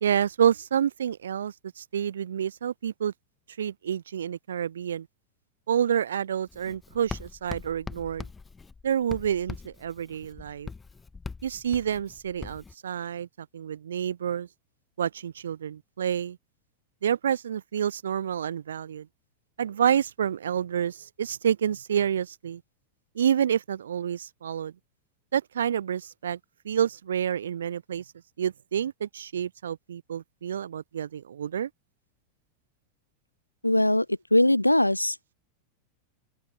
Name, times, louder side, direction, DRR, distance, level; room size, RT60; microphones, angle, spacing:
voice 1, 0.0-3.1 3.6-5.1 5.7-8.3 8.8-10.7 11.4-14.5 15.0-16.4 17.0-19.1 19.6-22.6 23.2-24.7 25.3-26.4 26.6-28.0 28.4-31.7, right 9 dB, 65° right, 0.3 m, -28 dB
Writing, 6.5-12.7, left 4 dB, 15° left, 0.5 m, -42 dB
voice 2, 33.6-34.1 34.3-35.3, left 1 dB, 85° left, 0.3 m, -21 dB
open air
figure-of-eight pair, 90°, 0 cm